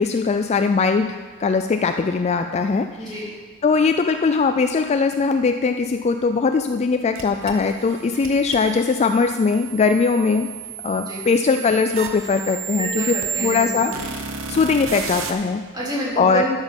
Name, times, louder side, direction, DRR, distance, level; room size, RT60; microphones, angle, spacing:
voice 1, 0.0-3.2 3.6-10.5 10.8-13.1 13.4-15.6 16.2-16.4, left 4 dB, 30° left, 7 dB, 0.3 m, -20 dB
voice 2, 3.0-3.3 11.1-11.2 12.8-14.0 15.7-16.5, equal, 20° right, -7 dB, 3.2 m, -28 dB
sound 1, 7.1-15.3, right 7 dB, 60° right, 1.0 m, -32 dB
12.0 x 7.2 x 5.2 m, 1.4 s
head